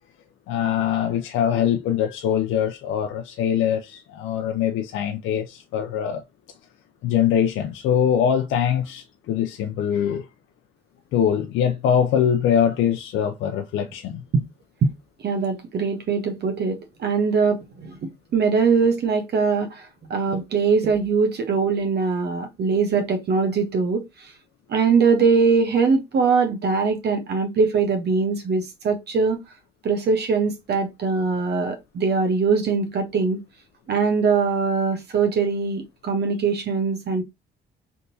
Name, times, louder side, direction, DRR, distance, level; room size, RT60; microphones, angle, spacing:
voice 1, 0.5-6.2 7.0-10.3 11.1-14.2, left 9 dB, 85° left, 0.5 m, -23 dB
voice 2, 15.2-24.3 24.7-29.4 29.8-33.4 33.9-37.2, right 5 dB, 55° right, 0.8 m, -22 dB
3.6 x 2.7 x 2.6 m
cardioid pair, 90°, 20 cm